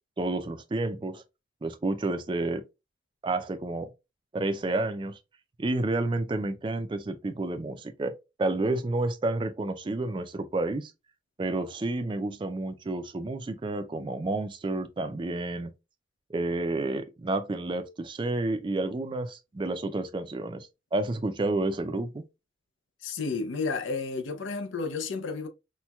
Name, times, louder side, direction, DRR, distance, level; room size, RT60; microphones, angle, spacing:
voice 1, 0.2-1.2 1.6-2.6 3.2-3.9 4.3-5.2 5.6-8.1 8.4-10.9 11.4-15.7 16.3-22.2, right 2 dB, 25° right, 0.3 m, -30 dB
voice 2, 23.0-25.5, left 4 dB, 85° left, 0.5 m, -31 dB
4.3 x 2.2 x 2.2 m
head